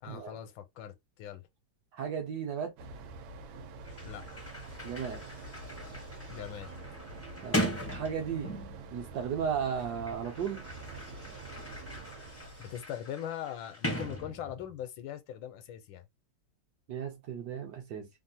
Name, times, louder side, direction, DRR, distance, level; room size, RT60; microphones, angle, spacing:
voice 1, 0.0-1.5 4.0-4.4 6.3-6.7 12.6-16.0, left 10 dB, 80° left, 1.3 m, -41 dB
voice 2, 1.9-2.7 4.8-5.3 7.4-8.5 8.9-10.6 16.9-18.1, right 7 dB, 70° right, 1.0 m, -35 dB
sound 1, 2.8-12.9, right 2 dB, 90° right, 1.4 m, -46 dB
Sliding door, 3.5-3.6 3.8-8.9 9.8-14.8, equal, 20° left, 0.3 m, -39 dB
3.3 x 2.0 x 2.7 m
omnidirectional pair, 2.1 m